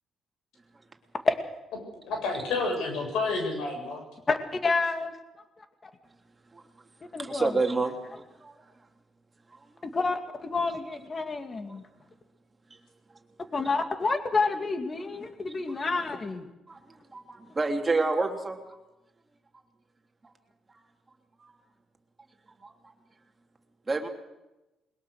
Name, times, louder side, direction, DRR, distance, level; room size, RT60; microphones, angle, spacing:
voice 1, 2.0-4.0, left 3 dB, 85° left, 3 dB, 8.0 m, -29 dB
voice 2, 4.3-5.2 5.8-5.9 7.1-7.6 9.8-11.9 13.5-16.5, left 3 dB, 35° left, 7 dB, 2.4 m, -29 dB
voice 3, 7.2-8.5 9.5-9.6 15.8-15.9 16.7-18.6 21.4-21.5 22.6-22.9 23.9-24.1, right 3 dB, 25° right, 3 dB, 3.3 m, -29 dB
21.5 x 21.0 x 6.5 m, 1.0 s
cardioid pair, 90°, 0 cm